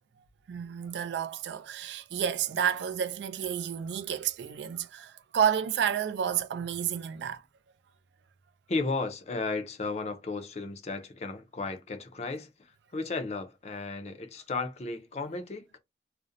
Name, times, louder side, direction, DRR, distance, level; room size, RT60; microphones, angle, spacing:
voice 1, 0.5-7.4, right 8 dB, 75° right, 0.3 m, -30 dB
voice 2, 8.7-15.8, left 3 dB, 35° left, 0.4 m, -34 dB
2.4 x 2.0 x 2.6 m
head